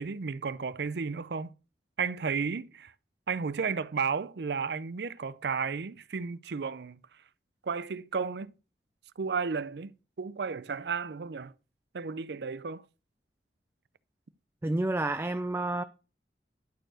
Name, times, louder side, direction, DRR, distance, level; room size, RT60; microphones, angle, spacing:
voice 1, 0.0-1.5 2.0-2.9 3.3-7.0 7.6-8.5 9.2-11.5 11.9-12.8, right 5 dB, 65° right, 0.5 m, -33 dB
voice 2, 14.6-15.8, right 2 dB, 15° right, 0.4 m, -29 dB
11.5 x 4.5 x 6.3 m
head